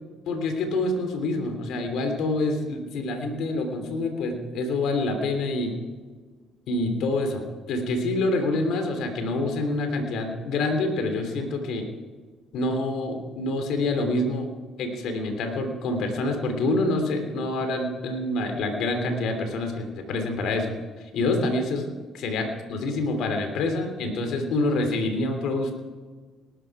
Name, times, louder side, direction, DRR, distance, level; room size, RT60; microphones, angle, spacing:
voice 1, 0.3-5.7 6.7-11.9 12.5-14.5 14.8-21.9 22.2-25.7, left 2 dB, 75° left, 6 dB, 3.2 m, -27 dB
18.5 x 13.0 x 4.8 m, 1.4 s
supercardioid pair, 70°, 0 cm